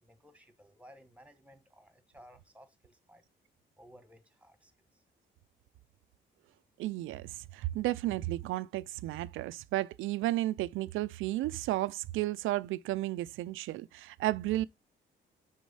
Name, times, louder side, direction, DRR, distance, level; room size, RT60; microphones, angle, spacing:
voice 1, 0.0-3.2 3.8-5.0, equal, 5° right, 1.5 m, -58 dB
voice 2, 6.8-14.6, right 16 dB, 85° right, 0.5 m, -33 dB
6.3 x 4.3 x 5.5 m
cardioid pair, 90°, 20 cm